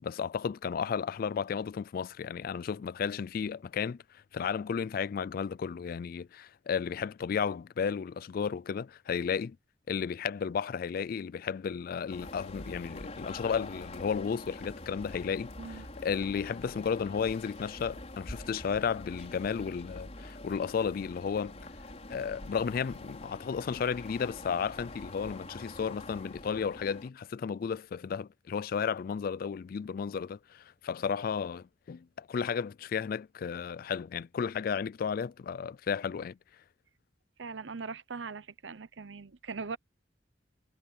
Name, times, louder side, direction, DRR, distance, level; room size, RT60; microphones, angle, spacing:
voice 1, 0.0-4.0 4.3-9.6 9.9-15.5 16.0-21.6 22.1-36.4, left 6 dB, 50° left, 0.3 m, -33 dB
sound 1, 12.1-27.1, left 2 dB, 35° left, 4.9 m, -45 dB
voice 2, 15.6-15.9 37.4-39.8, right 4 dB, 85° right, 0.9 m, -40 dB
head